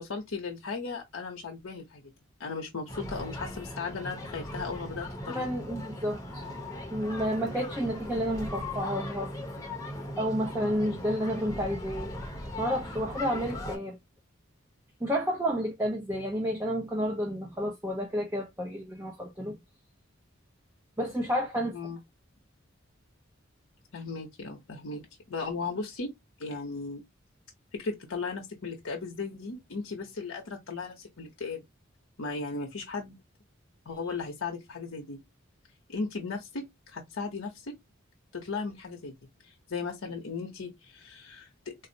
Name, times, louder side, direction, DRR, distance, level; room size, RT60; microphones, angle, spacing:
voice 1, 0.0-2.0 2.4-5.5 21.7-22.0 23.9-26.1 26.4-27.0 27.7-31.6 32.2-33.2 33.9-35.2 35.9-37.7 38.3-39.1 39.4-41.9, left 4 dB, 85° left, 0.8 m, -36 dB
sound 1, 2.9-13.8, left 1 dB, 15° left, 0.8 m, -38 dB
voice 2, 5.3-6.4 6.9-9.3 10.2-12.1 12.6-14.0 15.0-19.6 21.0-21.8, equal, 10° right, 0.5 m, -30 dB
3.9 x 2.0 x 2.6 m
head